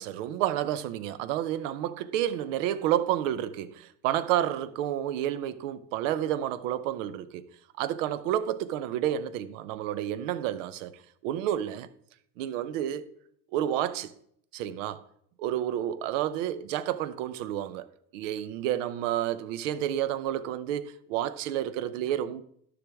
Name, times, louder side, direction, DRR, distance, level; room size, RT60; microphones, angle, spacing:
voice 1, 0.0-7.4 7.8-11.9 12.4-13.1 13.5-14.1 14.5-15.0 15.4-22.4, right 11 dB, 85° right, 0.7 m, -30 dB
11.0 x 6.9 x 3.5 m
supercardioid pair, 115°, 37 cm